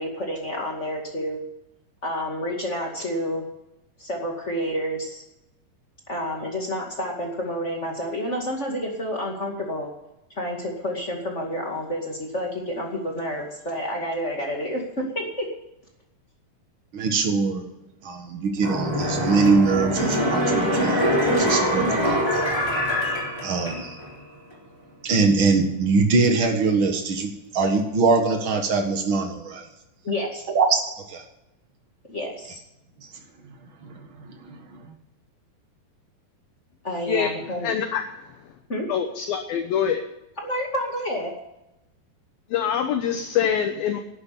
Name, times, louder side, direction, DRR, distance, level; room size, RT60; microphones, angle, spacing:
voice 1, 0.0-1.4 2.0-3.4 4.0-5.2 6.1-9.9 10.3-15.4 30.0-30.5 32.1-32.6 36.8-37.7 38.7-38.8 40.4-41.3, equal, 30° left, 0 dB, 1.2 m, -29 dB
voice 2, 16.9-17.6 18.0-22.5 23.4-24.0 25.0-29.6 30.5-31.2 33.8-34.6, right 4 dB, 70° right, 4 dB, 1.2 m, -23 dB
sound 1, 18.6-24.1 24.5-24.6, equal, 5° left, 3.4 m, -24 dB
voice 3, 37.6-38.0 38.9-40.0 42.5-44.0, left 8 dB, 70° left, 6 dB, 2.5 m, -24 dB
12.0 x 9.7 x 8.5 m, 0.91 s
omnidirectional pair, 4.9 m